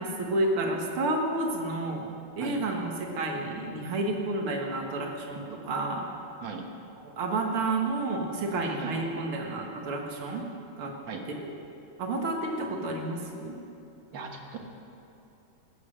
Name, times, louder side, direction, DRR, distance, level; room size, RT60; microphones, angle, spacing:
voice 1, 0.0-2.1 2.4-6.0 7.0-10.4 10.8-11.0 11.4-11.5 12.0-13.5, right 2 dB, 75° right, 1 dB, 2.4 m, -30 dB
voice 2, 14.1-14.6, right 6 dB, 60° right, 3 dB, 1.9 m, -37 dB
15.5 x 9.8 x 6.4 m, 2.8 s
omnidirectional pair, 2.4 m